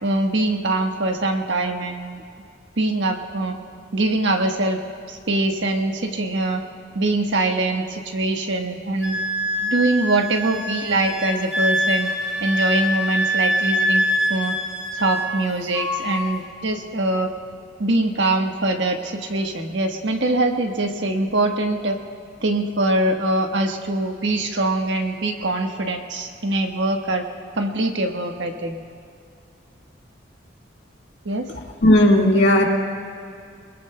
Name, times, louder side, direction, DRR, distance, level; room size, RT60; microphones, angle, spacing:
voice 1, 0.0-2.2 2.8-3.5 3.9-4.8 5.1-6.6 6.9-9.2 9.6-12.1 12.4-14.0 14.3-14.5 14.9-17.3 17.8-22.0 22.4-27.3 27.5-28.8 31.2-31.5, right 2 dB, 75° right, 3 dB, 1.3 m, -23 dB
Wind instrument woodwind instrument, 9.0-15.4 15.7-16.4, equal, 5° right, 1.5 m, -24 dB
voice 2, 31.8-32.6, left 1 dB, 65° left, -1 dB, 1.8 m, -14 dB
23.0 x 21.5 x 2.2 m, 2.4 s
head